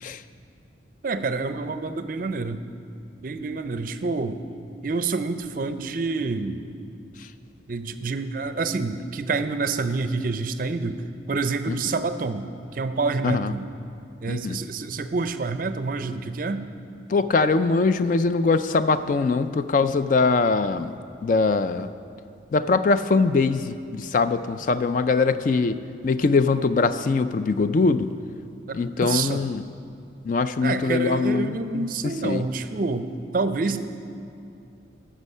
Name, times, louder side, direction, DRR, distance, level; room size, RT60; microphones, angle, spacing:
voice 1, 1.0-2.6 3.2-4.4 4.8-6.6 7.7-11.0 11.3-13.7 14.2-16.6 28.7-29.4 30.6-33.8, right 3 dB, 45° right, 10 dB, 0.4 m, -27 dB
voice 2, 14.3-14.6 17.1-20.9 21.2-21.9 22.5-25.8 26.0-28.1 28.7-29.6 30.3-32.4, left 4 dB, 45° left, 11 dB, 0.3 m, -22 dB
14.5 x 6.2 x 5.5 m, 2.6 s
head